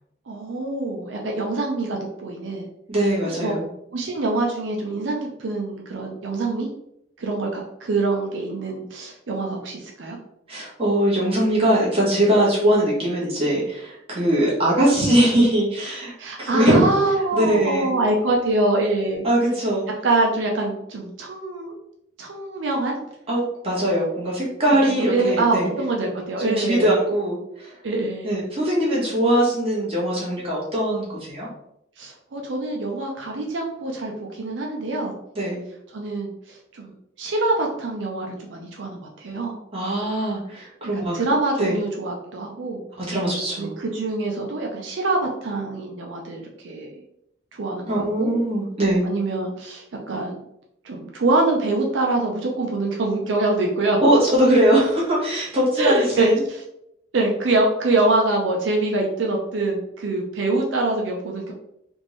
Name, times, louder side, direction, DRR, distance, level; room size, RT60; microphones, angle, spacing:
voice 1, 0.3-2.7 3.2-3.5 3.9-6.7 7.2-10.2 16.2-19.3 20.0-21.7 22.2-23.0 25.0-26.9 27.8-28.3 32.0-35.1 35.9-36.9 37.2-39.6 40.9-43.1 43.6-47.0 47.5-48.3 49.0-50.4 50.8-54.0 55.8-56.6 57.1-61.5, right 2 dB, 80° right, 0 dB, 0.5 m, -25 dB
voice 2, 2.9-3.6 10.5-16.1 16.4-16.9 17.3-17.9 19.2-19.8 23.3-25.7 26.4-27.7 28.2-31.5 35.3-35.6 39.7-41.2 41.6-41.8 43.1-43.8 47.9-49.0 54.0-56.3, right 1 dB, 30° right, -6 dB, 1.3 m, -21 dB
3.5 x 2.5 x 3.1 m, 0.78 s
head